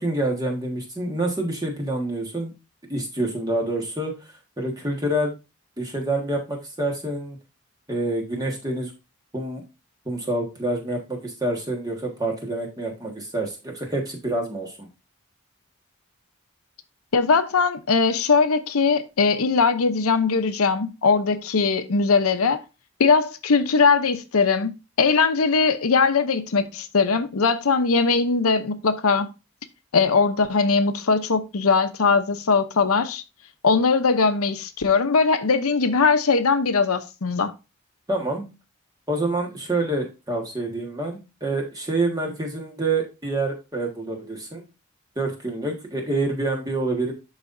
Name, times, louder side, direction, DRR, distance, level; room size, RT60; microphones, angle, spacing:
voice 1, 0.0-2.5 2.9-5.3 5.8-7.4 7.9-8.9 9.3-9.6 10.0-14.9 38.1-38.5 39.1-44.6 45.1-47.1, right 2 dB, 15° right, 1.5 m, -27 dB
voice 2, 17.1-22.6 23.0-29.3 29.9-33.2 33.6-37.5, left 4 dB, 90° left, 0.7 m, -20 dB
11.5 x 4.0 x 2.6 m
head